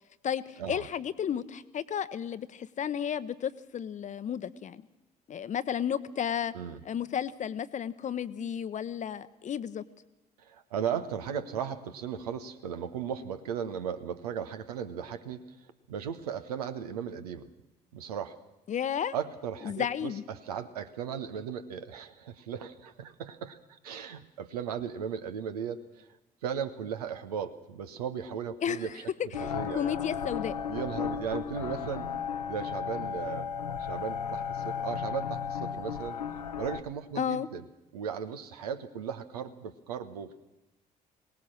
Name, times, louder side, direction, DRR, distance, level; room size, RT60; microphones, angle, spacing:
voice 1, 0.2-4.8 5.3-6.5 6.8-9.8 18.7-19.1 19.6-20.2 28.6-28.9 29.4-30.5 37.2-37.5, left 8 dB, 40° left, 15 dB, 0.8 m, -33 dB
voice 2, 10.4-15.4 15.9-17.5 17.9-18.3 19.1-26.1 26.4-29.0 29.4-29.9 30.7-32.1 32.4-33.5 33.8-36.2 36.6-37.6 37.9-40.4, right 7 dB, 75° right, 10 dB, 1.0 m, -36 dB
sound 1, 29.3-36.8, left 7 dB, 80° left, 0.9 m, -35 dB
23.0 x 18.5 x 6.5 m, 0.99 s
figure-of-eight pair, 50°, 20 cm